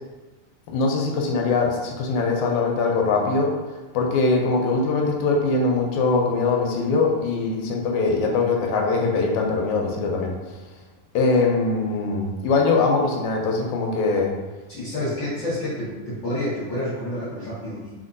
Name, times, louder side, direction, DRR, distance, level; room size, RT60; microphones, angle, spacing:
voice 1, 0.7-3.5 3.9-10.6 11.1-14.3, left 3 dB, 80° left, 0 dB, 1.8 m, -22 dB
voice 2, 14.7-17.9, left 1 dB, 65° left, -9 dB, 1.1 m, -29 dB
4.3 x 4.0 x 2.6 m, 1.2 s
omnidirectional pair, 3.6 m